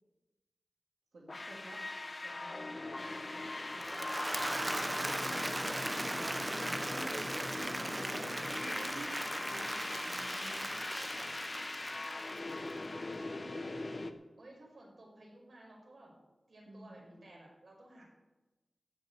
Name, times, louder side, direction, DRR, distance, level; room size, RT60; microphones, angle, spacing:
voice 1, 1.1-1.9 2.2-3.9 4.4-5.7 6.0-7.2 7.4-9.2 9.5-10.7 13.5-13.6 16.7-17.4, right 2 dB, 85° right, -4 dB, 2.7 m, -53 dB
sound 1, 1.3-14.1, left 2 dB, 40° left, 0.9 m, -41 dB
Applause / Crowd, 3.6-12.8, right 1 dB, 15° right, 0.7 m, -38 dB
voice 2, 8.2-8.6 10.9-11.3 12.2-12.7 13.1-13.7 14.4-16.1 16.5-18.0, right 1 dB, 50° right, -2 dB, 5.4 m, -56 dB
15.0 x 6.1 x 9.2 m, 1.1 s
wide cardioid pair, 110°, 0 cm